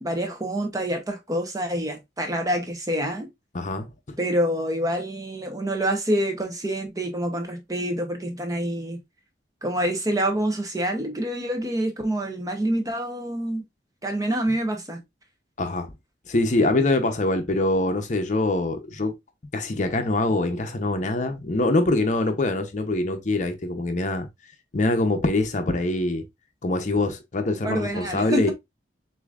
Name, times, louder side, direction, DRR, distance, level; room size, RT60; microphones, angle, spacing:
voice 1, 0.0-3.3 4.2-9.0 9.6-13.6 14.0-15.0 27.6-28.5, right 1 dB, 20° right, 0.8 m, -27 dB
voice 2, 3.5-4.2 15.6-15.9 16.3-19.2 19.5-24.3 24.7-26.3 26.6-28.5, left 2 dB, 45° left, 0.7 m, -24 dB
6.7 x 2.7 x 2.4 m
head